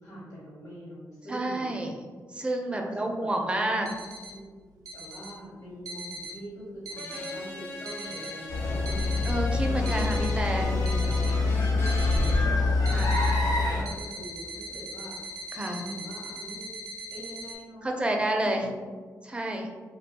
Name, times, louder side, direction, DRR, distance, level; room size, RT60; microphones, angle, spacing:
voice 1, 0.0-1.7 2.7-3.7 4.3-10.0 10.5-16.8 17.1-18.7, right 1 dB, 60° left, -9 dB, 1.0 m, -43 dB
voice 2, 1.3-1.9 2.3-3.9 9.3-10.7 12.9-13.1 15.5-15.8 17.8-18.7 19.2-19.7, right 1 dB, 15° right, 2 dB, 0.4 m, -29 dB
sound 1, 3.9-4.3 4.9-5.3 5.9-6.3 6.9-7.3 7.9-8.3 8.9-9.4 9.9-10.3 10.9-11.4 11.9-12.4 12.9-13.4 13.9-17.6, right 1 dB, 80° right, 0.4 m, -40 dB
sound 2, 7.0-12.4, left 1 dB, 35° left, 0.5 m, -39 dB
sound 3, 8.5-13.8, left 3 dB, 85° left, 0.4 m, -25 dB
2.6 x 2.2 x 2.8 m, 1.5 s
cardioid pair, 75°, 6 cm